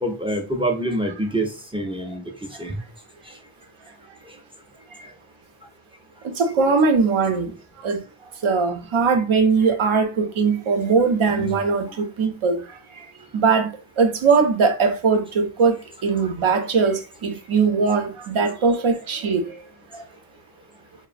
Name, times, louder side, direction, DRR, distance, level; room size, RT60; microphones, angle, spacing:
voice 1, 0.0-2.2 2.6-2.8 11.3-11.5, right 1 dB, 10° right, 0.4 m, -26 dB
voice 2, 6.4-7.5 7.8-8.0 8.4-12.6 13.3-13.7 14.0-15.8 16.0-19.4, right 5 dB, 75° right, 0.7 m, -20 dB
3.1 x 2.1 x 2.4 m
wide cardioid pair, 80°, 48 cm